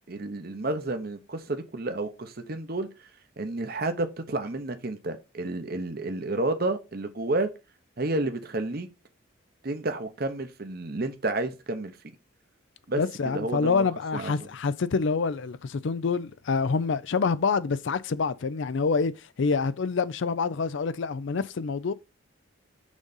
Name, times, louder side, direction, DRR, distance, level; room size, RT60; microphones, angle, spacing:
voice 1, 0.1-2.9 3.4-7.5 8.0-8.9 9.6-11.9 12.9-13.0 13.3-13.9 14.1-14.5, right 2 dB, 45° right, 0.8 m, -30 dB
voice 2, 13.0-21.9, left 4 dB, 65° left, 0.4 m, -27 dB
6.3 x 3.9 x 5.4 m
head